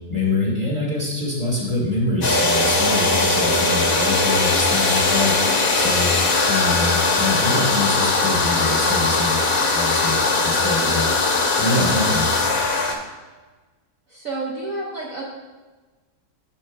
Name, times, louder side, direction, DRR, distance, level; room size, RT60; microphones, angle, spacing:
voice 1, 0.1-5.3 5.7-6.2 6.5-9.4 9.7-11.1 11.6-12.3, left 2 dB, 25° right, -4 dB, 2.1 m, -24 dB
sound 1, 2.2-13.0, left 3 dB, 55° left, 1.3 m, -20 dB
voice 2, 14.1-15.2, right 2 dB, 55° right, -2 dB, 1.1 m, -29 dB
11.0 x 6.6 x 2.2 m, 1.3 s
omnidirectional pair, 1.9 m